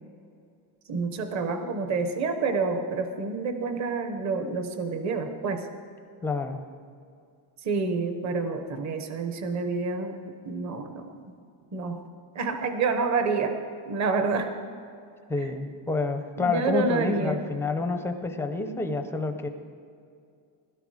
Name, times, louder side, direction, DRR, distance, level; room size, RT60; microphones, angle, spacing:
voice 1, 0.9-5.7 7.6-10.2 10.5-11.2 11.7-12.0 12.3-13.5 13.9-14.5 16.4-17.4, right 4 dB, 35° right, 7 dB, 1.0 m, -28 dB
voice 2, 6.2-6.6 15.3-19.5, left 3 dB, 5° left, 6 dB, 0.5 m, -28 dB
17.0 x 12.5 x 4.9 m, 2.4 s
cardioid pair, 175°, 49 cm